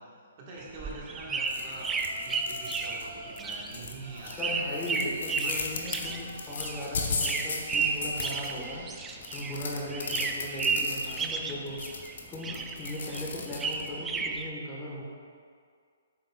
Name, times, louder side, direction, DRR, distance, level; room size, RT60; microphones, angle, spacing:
voice 1, 0.0-2.0 2.2-4.7 5.4-5.5, right 2 dB, 35° right, -4 dB, 1.4 m, -44 dB
sound 1, 0.6-9.6 9.9-12.1 12.4-14.5, right 4 dB, 15° right, 0.4 m, -33 dB
sound 2, 1.4-13.9, left 4 dB, 65° left, 0.9 m, -38 dB
Yell, 1.9-3.4 4.0-10.7, right 2 dB, 75° right, 1.3 m, -49 dB
voice 2, 4.4-11.8 12.3-15.0, left 1 dB, 15° left, -5 dB, 1.3 m, -38 dB
7.8 x 6.5 x 2.4 m, 2.1 s
hypercardioid pair, 145°, 0 cm